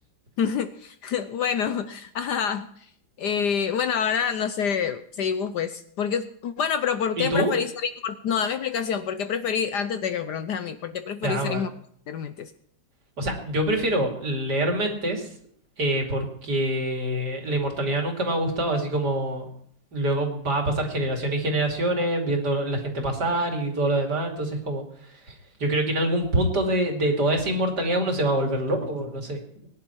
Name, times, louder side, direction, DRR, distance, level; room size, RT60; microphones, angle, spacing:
voice 1, 0.4-2.7 3.2-11.7 12.1-12.5, left 7 dB, 65° left, 11 dB, 1.2 m, -27 dB
voice 2, 7.2-7.5 11.2-11.6 13.2-15.3 15.8-19.5 19.9-24.8 25.3-25.4 25.6-29.4, right 1 dB, 55° right, 2 dB, 3.2 m, -25 dB
22.0 x 10.5 x 4.6 m, 0.64 s
omnidirectional pair, 2.2 m